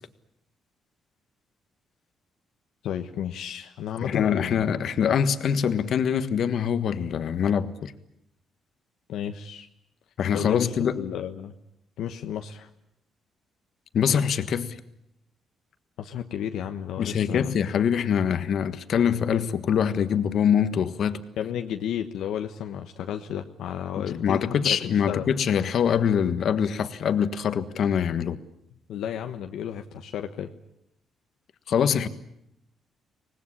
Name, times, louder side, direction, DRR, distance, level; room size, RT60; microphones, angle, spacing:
voice 1, 2.8-4.7 9.1-9.7 10.3-11.5 12.0-12.7 16.0-17.5 21.4-25.3 28.9-30.5, left 9 dB, 80° left, 1.2 m, -32 dB
voice 2, 4.0-7.9 10.2-11.0 13.9-14.8 17.0-21.2 24.0-28.4 31.7-32.1, left 8 dB, 65° left, 1.5 m, -24 dB
25.0 x 19.0 x 10.0 m
cardioid pair, 90°, 0 cm